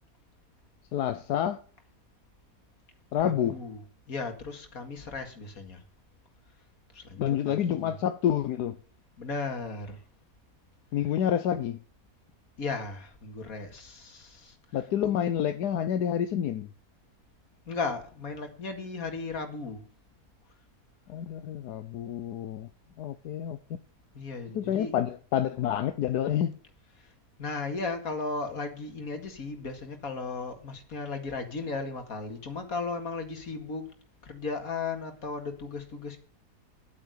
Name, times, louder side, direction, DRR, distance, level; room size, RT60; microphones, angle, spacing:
voice 1, 0.9-1.6 3.1-3.6 7.2-8.8 10.9-11.8 14.7-16.7 21.1-22.7 23.0-23.8 24.5-26.6, left 10 dB, 80° left, 1.3 m, -28 dB
voice 2, 3.2-5.8 6.9-8.0 9.2-10.0 12.6-14.6 17.7-19.9 24.1-24.9 27.0-27.1 27.4-33.9 34.2-36.2, left 4 dB, 60° left, 2.6 m, -36 dB
11.5 x 8.6 x 8.0 m
omnidirectional pair, 1.7 m